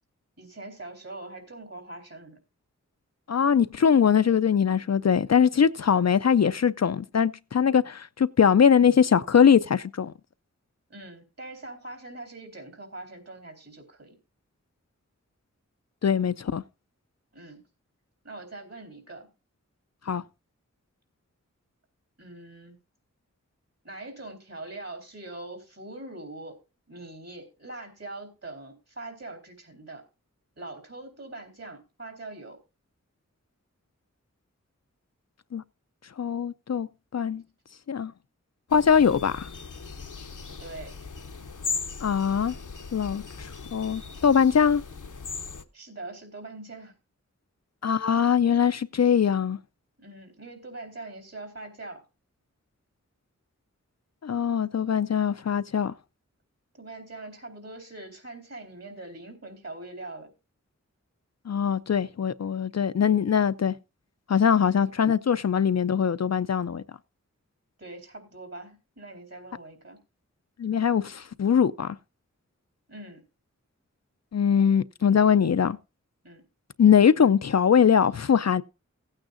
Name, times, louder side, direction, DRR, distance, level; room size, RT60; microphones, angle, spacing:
voice 1, 0.4-2.4 10.9-14.2 17.3-17.6 18.2-19.3 22.2-22.8 23.8-26.6 26.9-30.0 30.6-32.6 40.5-40.9 45.7-47.0 50.0-52.0 56.7-60.3 64.7-64.9 67.8-70.0 72.9-73.2 76.2-76.4, right 2 dB, 55° right, 3.9 m, -42 dB
voice 2, 3.3-10.1 16.0-16.6 20.1-20.2 35.5-35.6 36.2-36.9 37.1-37.4 37.9-38.1 38.7-39.5 42.0-42.5 42.9-44.8 47.8-49.6 54.2-55.9 61.5-63.7 64.3-66.8 70.6-72.0 74.3-75.8 76.8-78.6, left 7 dB, 60° left, 0.4 m, -22 dB
sound 1, 38.7-45.6, left 5 dB, 80° left, 0.8 m, -38 dB
17.0 x 8.9 x 2.5 m
wide cardioid pair, 40°, 30 cm